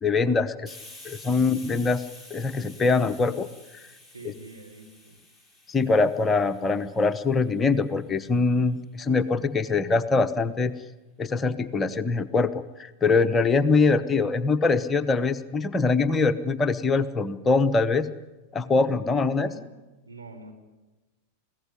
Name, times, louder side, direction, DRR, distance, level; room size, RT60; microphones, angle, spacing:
voice 1, 0.0-0.7 1.0-2.0 2.3-3.5 5.7-10.7 11.2-18.1 18.5-19.5, left 4 dB, 20° left, 10 dB, 0.9 m, -23 dB
Hiss, 0.7-8.1, left 2 dB, 10° right, 6.0 m, -49 dB
voice 2, 4.1-5.2 19.1-19.7 20.1-20.5, right 3 dB, 85° right, -1 dB, 3.6 m, -44 dB
23.0 x 16.0 x 9.8 m, 1.1 s
figure-of-eight pair, 90°, 0 cm